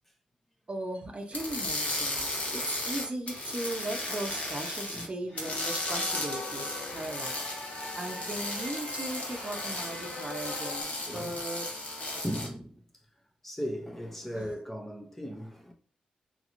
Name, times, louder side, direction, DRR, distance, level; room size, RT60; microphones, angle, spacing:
voice 1, 0.7-7.3 7.9-11.7 14.3-14.5, right 1 dB, 45° right, 0.8 m, -38 dB
sound 1, 1.3-5.1 5.4-12.5, left 1 dB, 50° left, 1.3 m, -35 dB
sound 2, 5.3-10.8, left 2 dB, 85° left, 1.2 m, -42 dB
voice 2, 11.1-11.4 12.2-13.1 13.4-15.7, equal, 10° left, 0.9 m, -37 dB
3.1 x 2.8 x 2.6 m
supercardioid pair, 40°, 3 cm